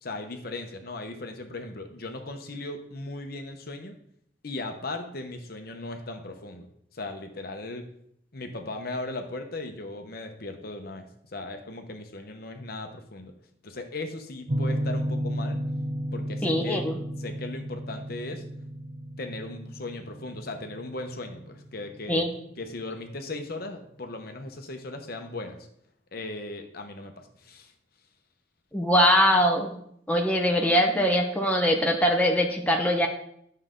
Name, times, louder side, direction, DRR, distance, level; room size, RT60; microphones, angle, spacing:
voice 1, 0.0-3.9 4.4-7.8 8.3-13.3 13.6-15.6 16.1-16.8 17.2-18.4 19.2-22.3 22.6-25.6 26.1-27.7, left 2 dB, 50° left, 5 dB, 1.0 m, -37 dB
sound 1, 14.5-23.2, equal, 35° right, 0.6 m, -33 dB
voice 2, 16.4-16.9 22.1-22.3 28.7-29.7 30.1-33.1, equal, 5° left, 1 dB, 0.9 m, -22 dB
11.5 x 6.5 x 3.8 m, 0.71 s
head